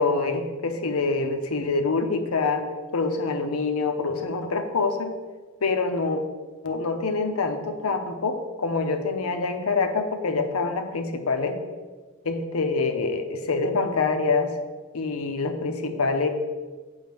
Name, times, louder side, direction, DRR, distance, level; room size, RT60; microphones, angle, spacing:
voice 1, 0.0-2.7 2.9-5.1 5.6-6.2 6.6-11.6 12.2-14.6 14.9-16.3, left 4 dB, 75° left, 7 dB, 0.7 m, -25 dB
7.9 x 5.5 x 3.4 m, 1.4 s
head